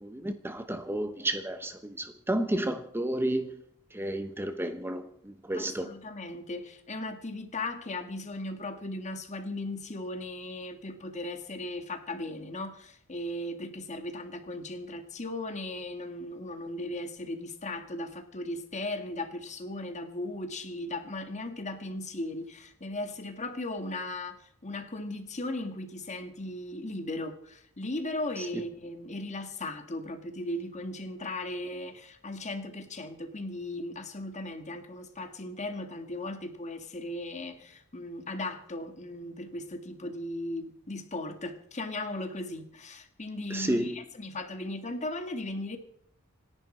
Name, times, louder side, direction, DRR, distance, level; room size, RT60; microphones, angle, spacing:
voice 1, 0.0-3.6 3.9-5.1 5.5-5.9 43.5-44.0, right 1 dB, 10° right, 0.9 m, -31 dB
voice 2, 5.5-45.8, left 2 dB, 35° left, 1.7 m, -37 dB
27.0 x 10.5 x 4.4 m
head